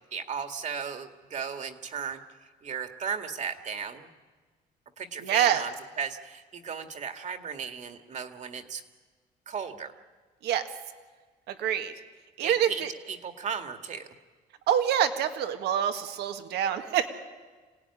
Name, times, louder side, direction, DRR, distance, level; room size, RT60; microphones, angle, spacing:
voice 1, 0.1-2.2 2.6-4.1 5.0-8.8 9.5-9.9 12.4-14.1, right 6 dB, 45° right, 7 dB, 2.1 m, -35 dB
voice 2, 5.2-5.6 10.4-10.6 11.5-11.9 12.4-12.9 14.7-17.1, right 10 dB, 80° right, 7 dB, 1.7 m, -26 dB
26.5 x 17.5 x 9.8 m, 1.4 s
cardioid pair, 110°, 17 cm